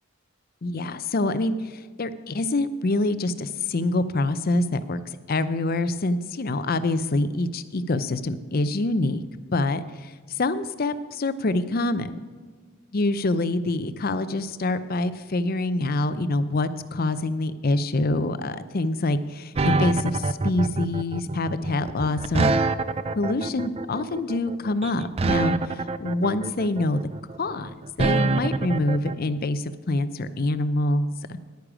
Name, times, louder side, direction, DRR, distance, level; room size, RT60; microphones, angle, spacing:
voice 1, 0.6-5.0 5.3-9.2 9.5-12.2 12.9-22.5 23.2-25.5 26.0-27.0 27.4-31.1, left 2 dB, 45° left, 12 dB, 0.5 m, -25 dB
sound 1, 19.6-29.1, right 3 dB, 30° right, 0.4 m, -25 dB
10.5 x 9.8 x 4.9 m, 1.6 s
head